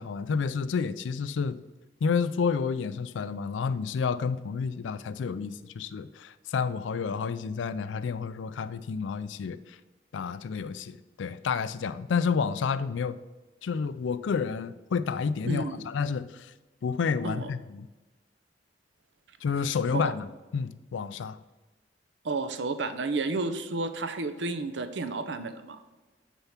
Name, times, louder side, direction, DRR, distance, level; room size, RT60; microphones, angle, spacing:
voice 1, 0.0-1.6 2.0-9.8 10.1-13.2 13.6-16.5 16.8-17.9 19.4-20.3 20.5-21.4, left 5 dB, 90° left, 15 dB, 0.4 m, -30 dB
voice 2, 15.5-15.9 17.2-17.5 19.9-20.0 22.2-25.8, right 3 dB, 75° right, 10 dB, 0.6 m, -31 dB
7.0 x 4.6 x 5.7 m, 1.2 s
head